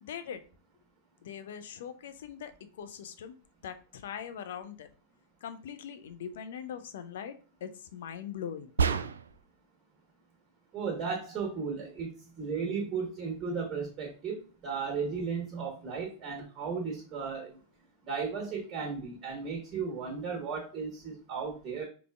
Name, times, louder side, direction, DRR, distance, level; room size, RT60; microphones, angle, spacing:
voice 1, 0.0-0.4 1.2-2.5 2.8-3.3 3.6-4.9 5.4-8.7 16.4-16.5, left 8 dB, 60° left, 9 dB, 0.5 m, -41 dB
sound 1, 8.8-9.5, right 6 dB, 70° right, 0.3 m, -28 dB
voice 2, 10.7-12.1 12.4-17.6 18.0-21.8, right 5 dB, 25° right, 1 dB, 1.4 m, -35 dB
5.0 x 3.4 x 2.4 m, 0.37 s
figure-of-eight pair, 90°, 0 cm